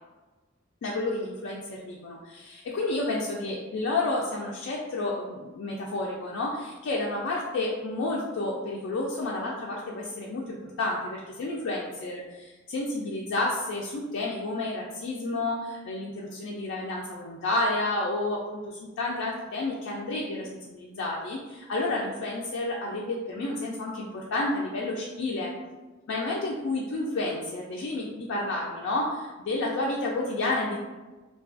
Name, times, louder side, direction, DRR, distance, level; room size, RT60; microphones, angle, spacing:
voice 1, 0.8-25.5 26.1-30.8, left 2 dB, 65° left, -3 dB, 0.3 m, -30 dB
2.4 x 2.2 x 2.4 m, 1.2 s
head